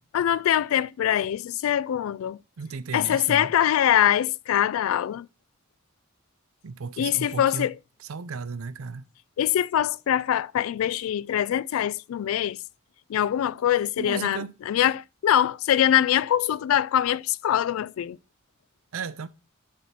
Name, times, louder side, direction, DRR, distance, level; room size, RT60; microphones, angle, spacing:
voice 1, 0.1-2.4 2.9-5.3 7.0-7.7 9.4-12.6 13.1-18.2, left 10 dB, 80° left, 0.3 m, -23 dB
voice 2, 2.6-3.5 6.6-7.7 8.1-9.1 14.0-14.5 18.9-19.3, right 5 dB, 80° right, 0.6 m, -34 dB
7.2 x 4.4 x 5.6 m
head